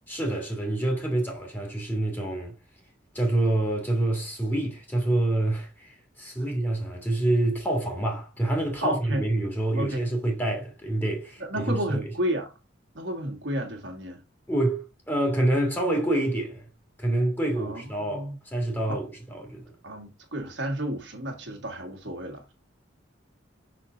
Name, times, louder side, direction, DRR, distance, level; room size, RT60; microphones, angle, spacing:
voice 1, 0.1-2.5 3.1-12.1 14.5-16.7 17.0-19.8, right 1 dB, 10° left, 1.9 m, -27 dB
voice 2, 8.8-9.2 9.8-10.1 11.4-12.5 12.9-14.2 17.6-17.8 18.1-18.4 18.9-19.0 19.8-22.5, right 1 dB, 70° right, 1.8 m, -31 dB
5.8 x 4.6 x 3.8 m
head